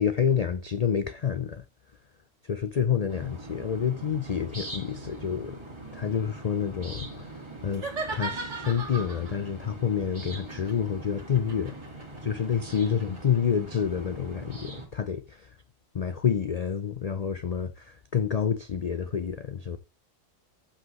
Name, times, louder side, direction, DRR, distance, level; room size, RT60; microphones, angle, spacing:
voice 1, 0.0-1.6 2.4-5.6 5.9-7.3 7.6-11.8 12.2-15.6 15.9-19.8, left 7 dB, 65° left, 0.3 m, -28 dB
sound 1, 3.1-14.9, right 2 dB, 20° right, 2.0 m, -42 dB
sound 2, 7.7-9.4 10.3-13.4, right 3 dB, 65° right, 1.9 m, -37 dB
14.5 x 5.8 x 3.1 m
omnidirectional pair, 1.4 m